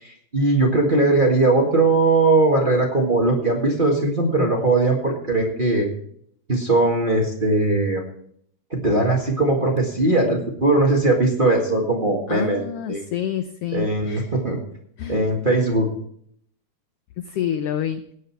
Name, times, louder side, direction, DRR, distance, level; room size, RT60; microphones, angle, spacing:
voice 1, 0.0-5.9 6.5-8.0 8.7-13.0 13.7-14.6 15.1-15.9, right 2 dB, 25° right, 0 dB, 1.3 m, -20 dB
voice 2, 12.3-14.3 15.0-15.2 17.2-18.0, left 10 dB, 80° left, 10 dB, 1.3 m, -28 dB
17.0 x 9.3 x 4.5 m, 0.65 s
omnidirectional pair, 3.4 m